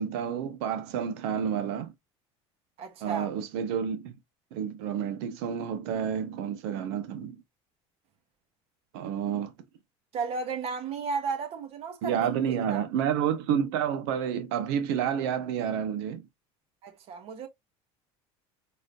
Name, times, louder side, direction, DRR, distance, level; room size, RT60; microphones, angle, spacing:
voice 1, 0.0-1.9 3.0-4.1 4.5-7.4 8.9-9.5 12.0-16.3, right 8 dB, 80° right, 1.2 m, -29 dB
voice 2, 2.8-3.3 10.1-12.8 16.8-17.5, right 5 dB, 50° right, 1.5 m, -34 dB
4.1 x 3.5 x 2.6 m
cardioid pair, 130°, 13 cm